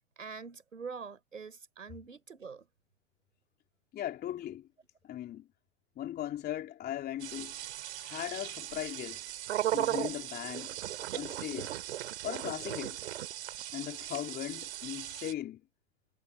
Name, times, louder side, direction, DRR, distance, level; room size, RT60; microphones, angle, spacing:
voice 1, 0.2-2.7, right 5 dB, 85° right, 5.7 m, -44 dB
voice 2, 3.9-4.7 5.0-5.5 5.9-7.5 8.0-9.2 9.7-10.8 11.1-11.7 12.2-13.0 13.7-15.6, left 12 dB, 25° left, 3.5 m, -38 dB
sound 1, 7.2-15.3, right 13 dB, 60° right, 4.0 m, -37 dB
figure-of-eight pair, 110°, 38 cm